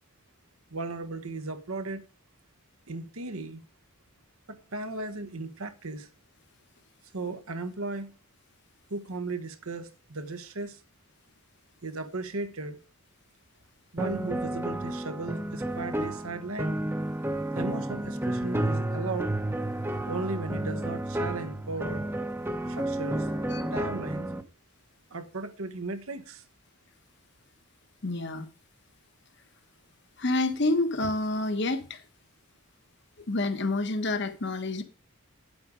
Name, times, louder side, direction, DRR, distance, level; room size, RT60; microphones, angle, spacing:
voice 1, 0.7-2.0 2.9-3.6 4.5-6.1 7.1-8.1 8.9-10.8 11.8-12.8 13.9-16.8 17.5-19.3 20.0-22.1 22.7-23.3 23.7-24.3 25.1-26.4, right 3 dB, 80° right, 1.2 m, -36 dB
sound 1, 14.0-24.4, right 1 dB, 10° right, 0.8 m, -31 dB
voice 2, 28.0-28.5 30.2-32.0 33.3-34.8, left 2 dB, 50° left, 1.1 m, -28 dB
9.8 x 7.9 x 5.0 m
head